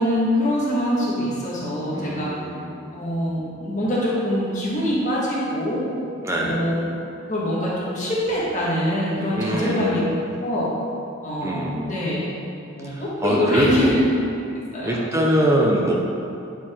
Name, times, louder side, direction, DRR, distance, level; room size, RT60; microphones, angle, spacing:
voice 1, 0.0-2.3 2.9-5.8 6.3-6.9 7.3-10.0 10.4-10.7 11.2-12.3 12.8-14.0 14.7-15.0, equal, 35° left, -7 dB, 1.5 m, -24 dB
voice 2, 1.9-2.9 6.2-6.8 9.3-10.1 11.4-12.1 12.8-14.0 14.8-15.9, right 1 dB, 15° right, -2 dB, 0.6 m, -23 dB
9.2 x 4.5 x 4.3 m, 2.6 s
head